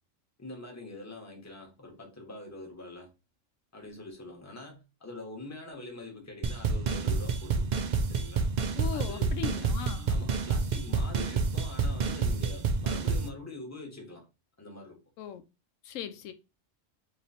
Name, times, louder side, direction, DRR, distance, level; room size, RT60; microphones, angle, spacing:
voice 1, 0.4-3.1 3.7-7.8 8.1-8.5 8.9-9.3 10.1-14.3 14.6-15.0, left 2 dB, 15° left, 1.0 m, -44 dB
sound 1, 6.4-13.3, right 4 dB, 60° right, 0.4 m, -29 dB
voice 2, 8.8-10.1 15.2-15.4 15.8-16.3, left 9 dB, 90° left, 1.0 m, -38 dB
3.2 x 3.0 x 4.1 m
omnidirectional pair, 1.3 m